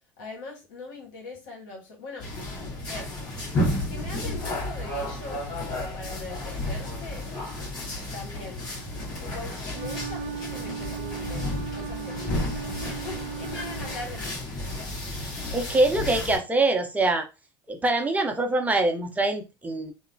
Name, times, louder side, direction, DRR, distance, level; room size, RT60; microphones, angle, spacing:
voice 1, 0.2-2.3 2.8-3.1 3.9-7.3 8.1-8.7 9.2-14.4, left 3 dB, 75° left, 0 dB, 1.2 m, -41 dB
sound 1, 2.2-16.4, left 1 dB, 40° left, 1.6 m, -32 dB
Wind instrument woodwind instrument, 9.7-14.2, right 8 dB, 75° right, 0.4 m, -37 dB
voice 2, 15.5-17.3 17.7-19.9, right 2 dB, 15° right, 5 dB, 0.6 m, -24 dB
2.8 x 2.0 x 2.6 m, 0.27 s
hypercardioid pair, 85°, 11 cm